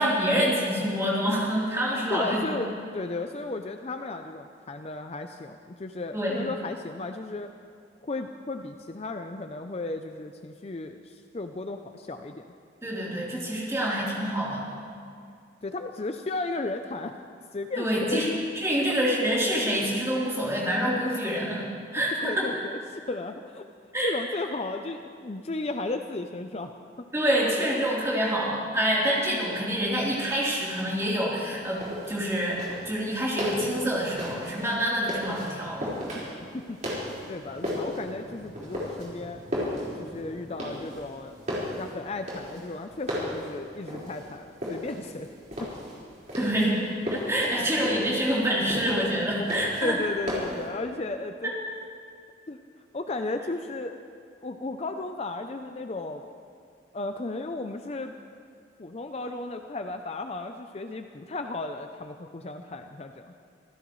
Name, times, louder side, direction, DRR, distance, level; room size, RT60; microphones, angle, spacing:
voice 1, 0.0-2.4 6.1-6.4 12.8-14.7 17.8-21.7 21.9-22.5 23.9-24.1 27.1-35.9 46.4-50.0 51.4-51.5, equal, 15° right, -6 dB, 3.5 m, -26 dB
voice 2, 2.1-7.6 8.0-12.5 15.6-17.2 17.5-18.4 20.4-20.5 22.2-23.6 24.0-26.7 27.0-27.1 36.5-39.4 40.0-41.3 41.6-45.3 45.6-45.7 49.8-51.5 52.5-52.6 52.9-54.0 54.4-56.2 56.9-58.1 58.8-63.3, left 2 dB, 35° left, 6 dB, 0.5 m, -34 dB
sound 1, 31.5-50.7, left 1 dB, 40° right, 4.6 m, -36 dB
26.5 x 15.5 x 3.2 m, 2.4 s
head